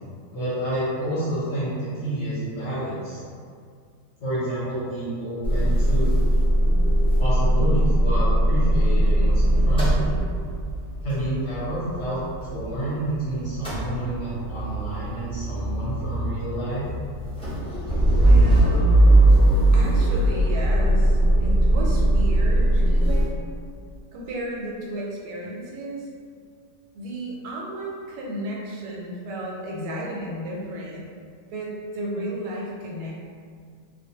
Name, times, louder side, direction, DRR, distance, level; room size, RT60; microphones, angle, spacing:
voice 1, 0.3-3.2 4.2-6.1 7.2-10.2 11.0-12.2 12.5-16.8, right 1 dB, 55° left, -10 dB, 0.9 m, -29 dB
Motor vehicle (road) / Engine starting / Idling, 5.4-13.2 13.4-23.2, right 1 dB, 10° left, 0.3 m, -20 dB
voice 2, 18.2-18.9 19.7-23.5 24.1-26.1 26.9-31.1 31.5-33.1, right 1 dB, 80° right, -4 dB, 1.1 m, -33 dB
2.5 x 2.1 x 2.8 m, 2.1 s
omnidirectional pair, 1.7 m